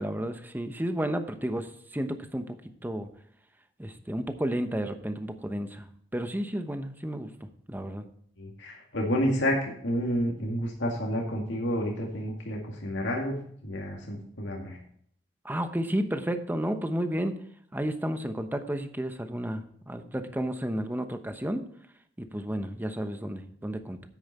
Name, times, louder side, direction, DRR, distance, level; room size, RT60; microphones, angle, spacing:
voice 1, 0.0-2.6 2.8-3.1 3.8-5.9 6.1-7.3 7.7-8.0 15.4-17.3 17.7-21.6 22.2-24.0, equal, 10° right, 8 dB, 1.0 m, -32 dB
voice 2, 8.4-14.8, equal, 80° left, -1 dB, 2.1 m, -30 dB
9.6 x 8.9 x 4.3 m, 0.64 s
head